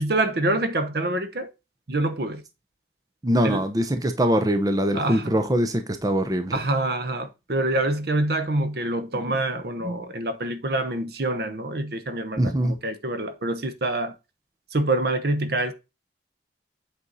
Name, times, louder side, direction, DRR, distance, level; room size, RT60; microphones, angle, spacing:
voice 1, 0.0-1.5 1.9-2.4 3.4-3.6 4.9-5.3 6.5-14.2 14.7-15.7, right 2 dB, 55° right, 0.9 m, -26 dB
voice 2, 3.2-6.5 12.4-12.8, equal, 20° right, 0.7 m, -23 dB
8.2 x 4.4 x 4.0 m
head